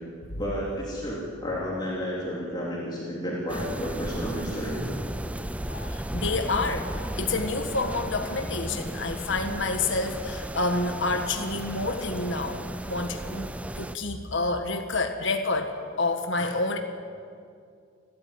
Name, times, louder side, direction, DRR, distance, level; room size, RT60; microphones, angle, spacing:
voice 1, 0.4-5.0, equal, 20° left, -5 dB, 3.7 m, -32 dB
sound 1, 3.5-13.9, right 1 dB, 5° right, 0.5 m, -35 dB
voice 2, 5.7-6.9 7.2-12.6 12.8-13.5 13.7-16.8, left 3 dB, 65° left, 5 dB, 1.6 m, -28 dB
29.5 x 13.0 x 9.1 m, 2.3 s
head